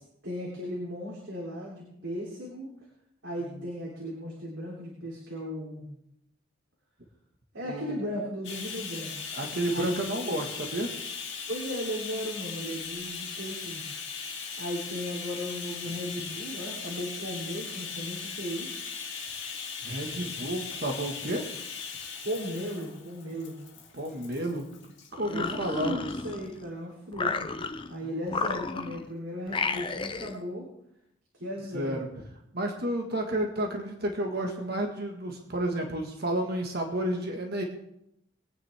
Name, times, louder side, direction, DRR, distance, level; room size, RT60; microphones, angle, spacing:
voice 1, 0.2-2.7 3.2-5.9 7.5-9.1 9.7-10.0 10.3-10.4 11.5-13.8 14.6-18.8 22.2-23.6 25.2-27.5 27.9-30.7 31.4-32.0, equal, 80° right, -4 dB, 3.4 m, -36 dB
voice 2, 7.6-8.0 9.3-10.9 19.8-21.5 23.9-24.6 25.2-26.0 28.0-28.1 31.7-32.1 32.5-37.6, right 1 dB, 55° right, 2 dB, 1.7 m, -31 dB
Bathtub (filling or washing), 8.4-25.1 26.0-26.2 26.5-26.6, left 6 dB, 65° left, 2.3 m, -39 dB
sound 1, 25.1-26.7 27.1-27.9 28.3-29.1 29.5-30.4, left 4 dB, 25° left, 0.6 m, -32 dB
22.0 x 9.4 x 3.6 m, 0.76 s
head